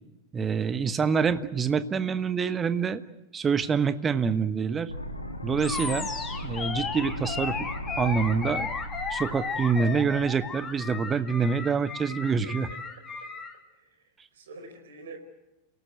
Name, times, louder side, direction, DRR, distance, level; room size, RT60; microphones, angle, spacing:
voice 1, 0.3-3.0 3.3-4.9 5.4-6.1 6.4-7.6 8.0-8.7 9.1-12.7, right 5 dB, 20° right, 12 dB, 1.3 m, -26 dB
sound 1, 4.9-10.9, equal, 85° left, 2.2 m, -38 dB
Animal, 5.6-13.5, left 4 dB, 20° left, 2.9 m, -34 dB
voice 2, 12.4-12.8 13.2-13.3 13.7-15.2, right 3 dB, 60° right, 7 dB, 4.9 m, -47 dB
28.5 x 18.0 x 8.0 m, 0.96 s
figure-of-eight pair, 90°, 0 cm